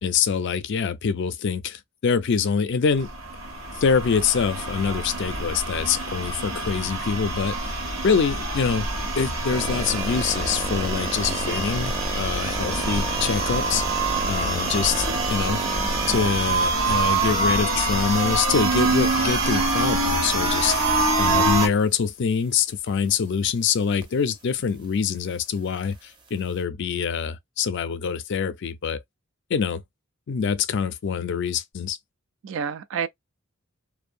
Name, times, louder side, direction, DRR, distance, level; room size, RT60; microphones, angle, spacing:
voice 1, 0.0-3.1 3.8-7.6 8.0-8.9 9.2-13.8 14.3-15.6 16.1-20.8 21.2-29.0 29.5-29.8 30.3-32.0, left 6 dB, 60° left, 0.4 m, -25 dB
sound 1, 2.9-21.7, right 2 dB, 85° right, 1.1 m, -25 dB
sound 2, 9.5-16.3 16.9-17.3 18.9-19.9 21.3-21.4 24.0-24.1, right 2 dB, 25° right, 0.6 m, -33 dB
voice 2, 32.4-33.1, right 7 dB, 65° right, 0.4 m, -30 dB
2.6 x 2.1 x 2.5 m
head